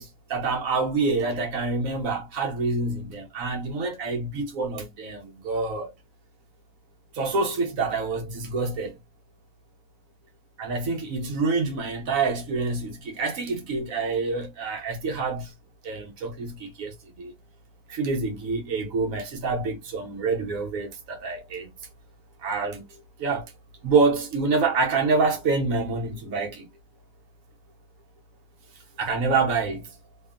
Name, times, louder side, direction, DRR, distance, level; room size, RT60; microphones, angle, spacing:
voice 1, 0.0-5.9 7.1-9.0 10.6-15.5 15.8-17.3 17.9-21.7 22.4-22.9 23.2-23.5 23.8-26.7 29.0-29.9, right 4 dB, 60° right, 1.0 m, -27 dB
2.8 x 2.5 x 2.3 m
omnidirectional pair, 1.9 m